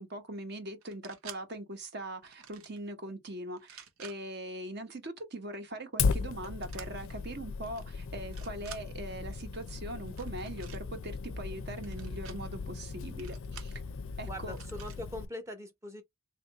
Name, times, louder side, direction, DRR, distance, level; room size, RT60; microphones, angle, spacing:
voice 1, 0.0-13.8 14.2-14.6, right 1 dB, 50° right, 1.0 m, -41 dB
sound 1, 0.8-1.4 2.2-2.8 3.6-4.2 6.6-6.9 7.6-7.8 8.2-8.8 10.1-10.8 11.8-12.4 13.2-13.8 14.5-15.0, right 8 dB, 85° right, 0.8 m, -50 dB
Fire, 6.0-15.3, left 5 dB, 70° left, 0.4 m, -37 dB
voice 2, 14.2-16.0, left 1 dB, 15° right, 0.7 m, -42 dB
3.5 x 2.5 x 2.9 m
head